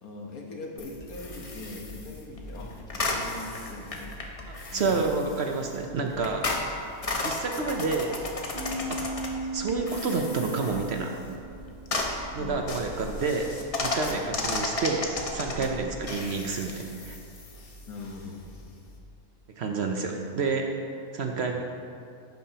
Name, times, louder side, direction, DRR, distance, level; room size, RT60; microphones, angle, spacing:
voice 1, 0.0-4.2 4.7-5.1 6.0-6.3 7.6-7.7 8.7-8.9 12.3-12.9 14.1-14.2 15.6-15.8 17.9-18.4 19.6-20.0 21.2-21.5, left 2 dB, 80° left, 0 dB, 1.6 m, -42 dB
sound 1, 0.8-19.0, left 2 dB, 30° left, 0.7 m, -35 dB
voice 2, 4.7-6.4 7.2-8.1 8.9-9.0 9.5-11.1 12.3-13.5 13.8-17.2 19.6-20.7 21.1-21.6, right 4 dB, 60° right, 3 dB, 0.8 m, -29 dB
sound 2, 8.5-12.1, right 2 dB, 85° right, 2.6 m, -37 dB
11.5 x 8.8 x 2.9 m, 2.4 s
omnidirectional pair, 1.5 m